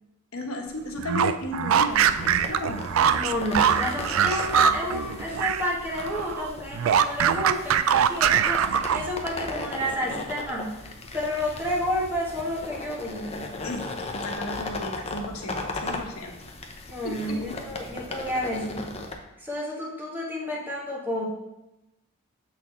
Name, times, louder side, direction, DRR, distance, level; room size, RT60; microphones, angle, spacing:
voice 1, 0.3-2.9 13.6-16.3 17.0-17.6, left 1 dB, 80° left, 3 dB, 1.1 m, -34 dB
sound 1, 1.0-5.7 6.0-9.3, right 8 dB, 65° right, 0.3 m, -23 dB
sound 2, 1.9-19.1, left 2 dB, 30° left, 0.7 m, -37 dB
voice 2, 3.0-13.5 16.9-18.9 19.4-21.2, equal, 10° right, -3 dB, 1.3 m, -31 dB
6.9 x 4.2 x 4.3 m, 0.93 s
head